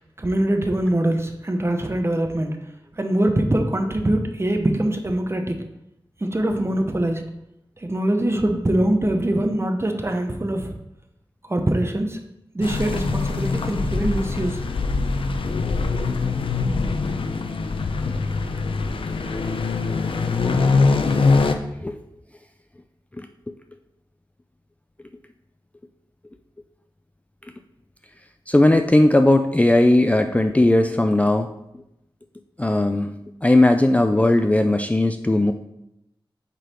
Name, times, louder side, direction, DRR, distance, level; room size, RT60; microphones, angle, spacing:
voice 1, 0.2-2.6 3.0-5.6 6.2-7.2 7.8-10.7 11.5-12.2 12.5-14.6, right 1 dB, 30° right, 5 dB, 0.9 m, -23 dB
sound 1, 12.6-21.5, left 4 dB, 75° left, 0.6 m, -23 dB
voice 2, 28.5-31.5 32.6-33.1 33.4-35.5, left 1 dB, 15° left, 6 dB, 0.4 m, -17 dB
8.1 x 3.9 x 4.3 m, 0.84 s
wide cardioid pair, 80°, 9 cm